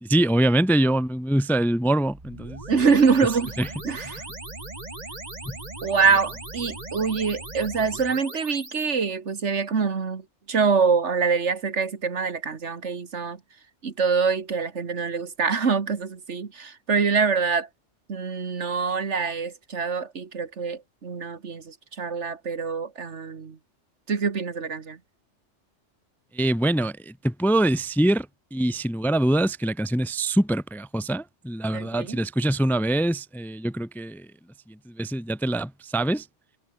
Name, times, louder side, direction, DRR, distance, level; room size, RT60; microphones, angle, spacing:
voice 1, 0.0-2.6 3.6-3.7 5.5-5.6 26.3-28.3 28.5-34.3 34.9-36.2, right 1 dB, ahead, 0.7 m, -24 dB
sound 1, 2.1-8.9, right 2 dB, 35° right, 2.8 m, -38 dB
voice 2, 2.7-3.5 3.8-4.2 5.8-10.2 10.5-13.4 13.8-17.7 18.1-23.6 24.1-25.0 31.7-32.2, right 5 dB, 70° right, 2.0 m, -25 dB
omnidirectional pair, 1.2 m